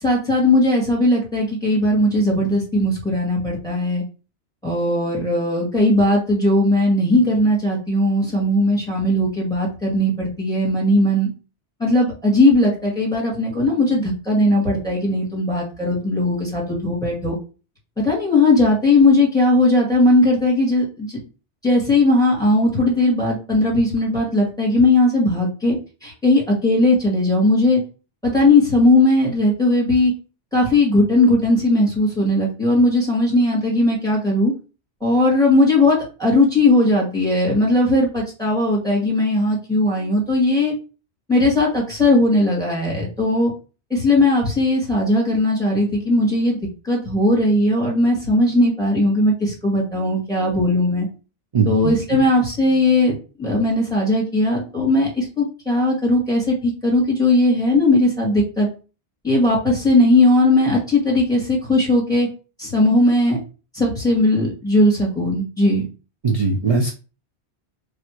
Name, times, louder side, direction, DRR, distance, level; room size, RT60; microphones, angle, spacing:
voice 1, 0.0-4.0 4.6-11.3 11.8-17.4 18.0-21.2 21.6-25.8 26.0-27.8 28.2-30.1 30.5-34.5 35.0-40.7 41.3-43.5 43.9-46.6 46.8-51.1 51.7-58.7 59.2-62.3 62.6-63.4 63.7-65.8, left 1 dB, 5° left, -5 dB, 1.8 m, -18 dB
voice 2, 51.5-51.9 66.2-66.9, right 4 dB, 40° right, 1 dB, 0.6 m, -19 dB
3.3 x 2.5 x 4.4 m, 0.34 s
omnidirectional pair, 1.1 m